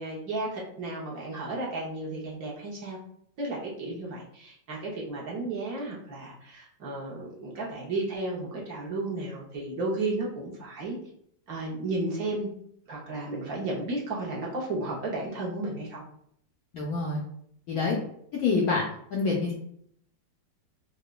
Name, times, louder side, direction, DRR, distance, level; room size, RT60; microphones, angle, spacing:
voice 1, 0.0-3.0 3.4-11.0 11.5-12.5 12.9-16.0, right 2 dB, 60° right, -4 dB, 1.1 m, -33 dB
voice 2, 16.7-17.2 17.7-18.0 18.3-18.8 19.1-19.5, left 4 dB, 70° left, -2 dB, 0.9 m, -26 dB
4.8 x 2.2 x 2.2 m, 0.68 s
omnidirectional pair, 2.1 m